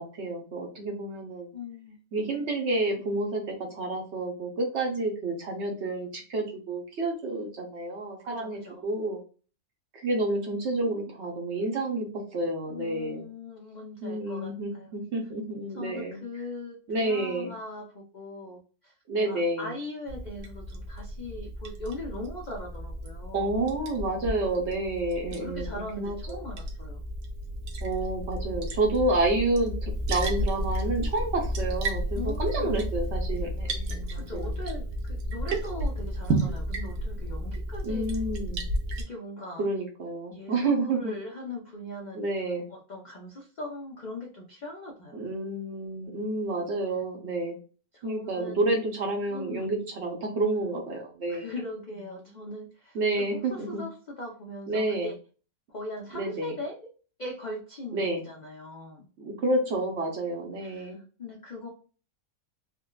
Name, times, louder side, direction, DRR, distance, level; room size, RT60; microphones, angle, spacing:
voice 1, 0.0-1.5 2.1-9.2 9.9-12.1 12.3-13.2 14.0-16.2 16.9-17.5 19.1-19.7 23.3-26.4 27.8-34.5 37.8-38.7 39.6-41.1 42.1-42.6 45.1-47.6 48.0-51.5 52.9-53.8 54.7-55.1 56.1-56.5 57.9-58.2 59.2-61.0, right 2 dB, 60° right, 2 dB, 0.8 m, -29 dB
voice 2, 1.5-2.0 8.2-8.8 12.7-14.9 15.7-23.6 25.3-27.0 32.1-32.8 33.9-38.1 39.0-39.7 40.3-45.3 47.9-48.6 49.3-49.7 51.3-55.2 55.7-56.9 57.2-59.1 60.6-61.7, left 1 dB, 85° left, -2 dB, 0.4 m, -40 dB
Liquid, 20.1-39.0, right 1 dB, 75° right, 1.1 m, -32 dB
3.6 x 2.2 x 2.2 m, 0.37 s
omnidirectional pair, 1.6 m